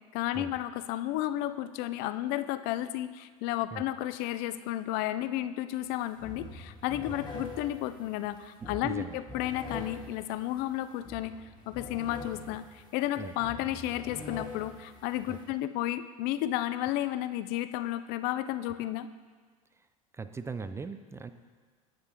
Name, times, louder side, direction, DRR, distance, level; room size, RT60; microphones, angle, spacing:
voice 1, 0.1-11.3 11.7-19.1, left 14 dB, 55° left, 13 dB, 0.4 m, -32 dB
sound 1, 5.8-5.9 6.2-15.4, left 2 dB, 20° left, 1.9 m, -44 dB
voice 2, 8.6-9.2 13.2-13.3 15.2-15.4 19.8-19.9 20.1-21.3, right 4 dB, 15° right, 10 dB, 0.4 m, -40 dB
11.0 x 8.6 x 2.9 m, 1.5 s
hypercardioid pair, 85°, 19 cm